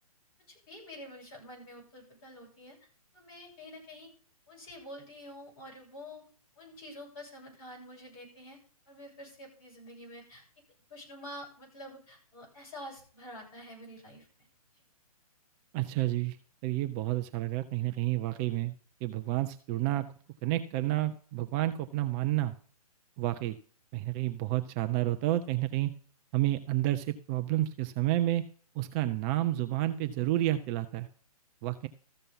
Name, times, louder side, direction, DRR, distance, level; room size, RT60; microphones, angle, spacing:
voice 1, 0.5-2.8 3.1-4.1 4.5-6.2 6.6-8.6 8.9-10.4 10.9-14.3, left 1 dB, 40° left, -1 dB, 7.7 m, -47 dB
voice 2, 15.7-16.4 16.6-18.7 19.0-20.1 20.4-22.6 23.2-23.6 23.9-25.9 26.3-28.4 28.8-31.1 31.6-31.9, right 15 dB, 25° right, 9 dB, 0.5 m, -30 dB
14.0 x 6.8 x 5.5 m, 0.42 s
figure-of-eight pair, 130°, 19 cm